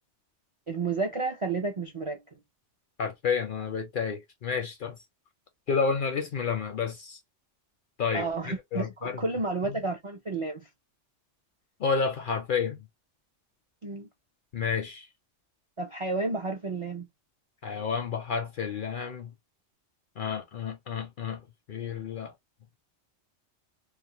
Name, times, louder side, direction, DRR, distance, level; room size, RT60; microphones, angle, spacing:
voice 1, 0.7-2.4 8.1-10.7 13.8-14.1 15.8-17.1, right 3 dB, 55° right, 0.3 m, -31 dB
voice 2, 3.0-5.0 5.7-7.2 8.0-9.2 9.7-9.8 11.8-12.8 14.5-15.1 17.6-19.3 20.2-22.3, left 5 dB, 60° left, 0.5 m, -30 dB
2.3 x 2.1 x 2.7 m
omnidirectional pair, 1.2 m